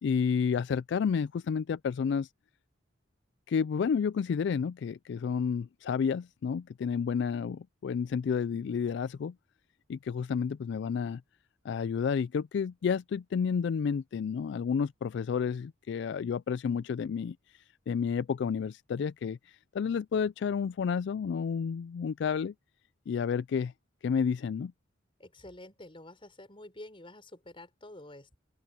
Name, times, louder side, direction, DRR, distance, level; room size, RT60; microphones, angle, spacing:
voice 1, 0.0-2.3 3.5-9.3 9.9-11.2 11.6-17.4 17.9-22.5 23.1-23.7 24.0-24.7, left 6 dB, 65° left, 0.3 m, -30 dB
voice 2, 25.2-28.4, left 1 dB, 30° left, 5.3 m, -49 dB
open air
head